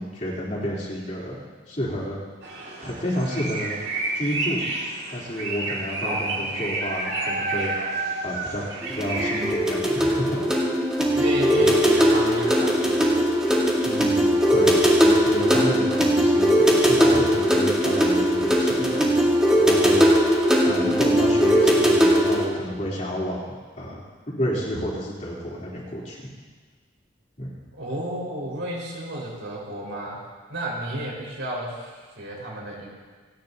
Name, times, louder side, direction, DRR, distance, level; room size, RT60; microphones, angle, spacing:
voice 1, 0.0-2.2 2.8-3.8 4.1-4.7 5.1-7.9 8.2-10.5 11.6-11.7 13.8-19.3 19.6-20.1 20.6-24.0 24.4-26.3 27.4-27.5, equal, 40° left, -5 dB, 3.3 m, -30 dB
sound 1, 2.4-9.5, right 2 dB, 55° right, 2.3 m, -30 dB
voice 2, 6.0-6.6 11.1-13.2 27.7-30.2 30.5-32.9, right 1 dB, 85° right, -4 dB, 4.9 m, -32 dB
sound 2, 8.8-22.4, equal, 5° right, 1.8 m, -19 dB
29.5 x 10.5 x 2.8 m, 1.5 s
head